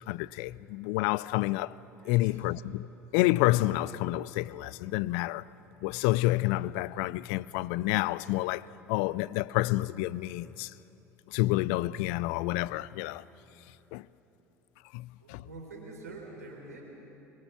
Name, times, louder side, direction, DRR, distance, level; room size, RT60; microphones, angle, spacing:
voice 1, 0.1-1.8 2.1-2.9 3.1-5.5 5.8-10.7 11.3-13.2 13.9-14.1 14.9-15.4, left 18 dB, 60° left, 0.4 m, -29 dB
voice 2, 2.0-2.5 15.2-16.8, right 3 dB, 80° right, 3.7 m, -46 dB
23.0 x 22.5 x 5.9 m
figure-of-eight pair, 65°, 9 cm